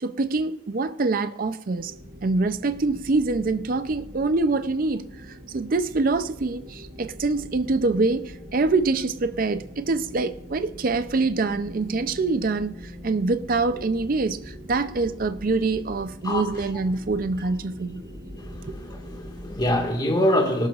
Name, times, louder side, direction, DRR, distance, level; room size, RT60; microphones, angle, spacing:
voice 1, 0.0-1.9 2.2-18.0 18.6-18.8, right 3 dB, 45° right, 0.5 m, -25 dB
sound 1, 1.7-19.9, equal, 30° right, 2.6 m, -42 dB
voice 2, 18.3-20.7, left 1 dB, 20° left, 1.7 m, -24 dB
19.0 x 12.0 x 2.4 m
head